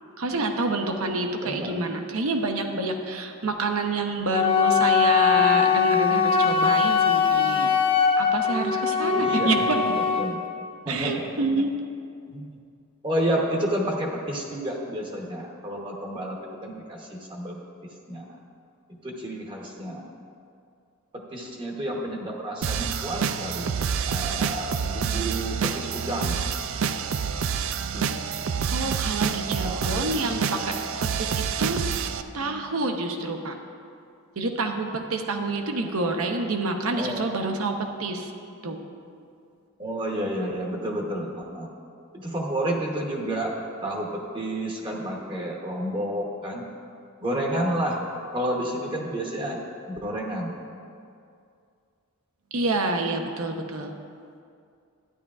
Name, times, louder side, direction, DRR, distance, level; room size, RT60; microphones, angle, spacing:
voice 1, 0.2-7.7 8.2-9.8 10.9-11.7 28.7-30.7 31.2-31.8 32.3-33.5 34.4-37.7 38.0-38.3 38.6-38.8 52.5-53.9, right 2 dB, 80° right, 4 dB, 0.8 m, -27 dB
voice 2, 1.4-1.9 9.2-9.8 10.2-10.4 10.9-11.4 12.3-12.4 13.0-17.6 18.1-18.2 19.0-20.1 21.1-23.7 24.1-26.4 27.9-28.1 29.6-30.1 35.8-35.9 37.0-37.2 39.8-41.7 42.1-43.5 43.8-44.1 44.3-46.6 47.2-48.0 48.3-49.6 49.9-50.5, right 1 dB, 20° right, 0 dB, 0.8 m, -30 dB
Wind instrument woodwind instrument, 4.3-10.4, left 6 dB, 25° left, 0.6 m, -21 dB
sound 1, 22.6-32.2, right 6 dB, 60° right, 0.4 m, -28 dB
12.5 x 9.9 x 2.4 m, 2.4 s
head